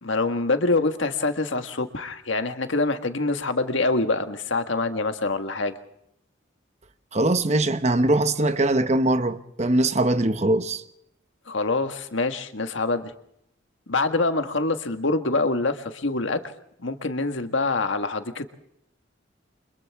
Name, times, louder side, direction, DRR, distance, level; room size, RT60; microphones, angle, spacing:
voice 1, 0.0-5.7 11.5-13.1 13.9-16.4 16.8-18.5, left 3 dB, 75° left, 1.6 m, -25 dB
voice 2, 7.1-10.8, right 2 dB, 35° right, 1.0 m, -22 dB
29.5 x 25.5 x 3.6 m
head